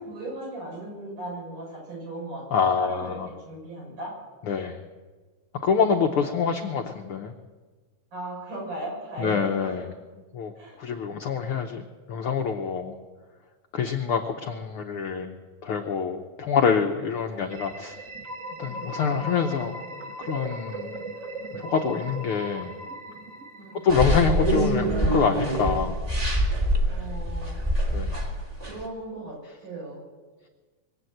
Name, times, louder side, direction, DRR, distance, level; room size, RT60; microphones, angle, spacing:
voice 1, 0.0-3.2 3.4-4.1 8.1-9.7 10.6-10.8 23.6-24.0 26.9-27.6 28.6-29.4 29.6-30.1, right 2 dB, 80° right, -3 dB, 7.7 m, -37 dB
voice 2, 2.5-3.3 4.4-4.8 5.6-7.3 9.2-9.9 10.3-10.5 10.8-12.9 13.7-15.4 15.6-18.0 18.6-19.8 20.2-20.9 21.5-22.7 23.7-26.0 27.9-28.2, left 6 dB, 80° left, 4 dB, 1.2 m, -26 dB
sound 1, 17.5-24.2, right 1 dB, 40° right, 1.2 m, -38 dB
sound 2, 23.9-28.8, right 1 dB, 20° right, 1.2 m, -25 dB
23.0 x 8.0 x 7.8 m, 1.4 s
omnidirectional pair, 3.6 m